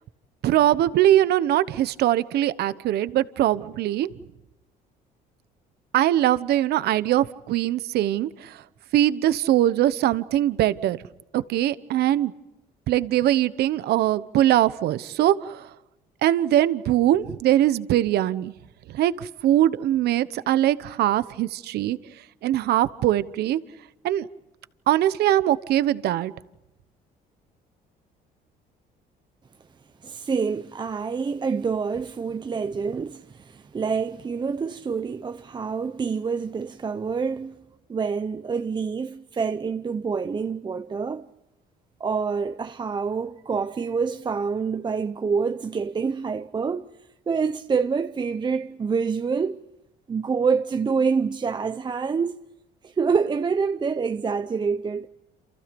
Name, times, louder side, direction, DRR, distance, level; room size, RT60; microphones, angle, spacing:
voice 1, 0.4-4.1 5.9-8.6 8.9-11.0 11.3-12.3 12.9-15.7 16.2-18.5 18.9-22.0 22.4-23.6 24.0-24.3 24.9-26.3, right 13 dB, 70° right, 1.0 m, -22 dB
voice 2, 30.0-37.5 37.9-41.3 42.0-46.9 47.3-49.6 50.1-52.4 52.8-55.1, right 5 dB, 25° right, 0.8 m, -26 dB
28.5 x 28.0 x 5.3 m
cardioid pair, 110°, 17 cm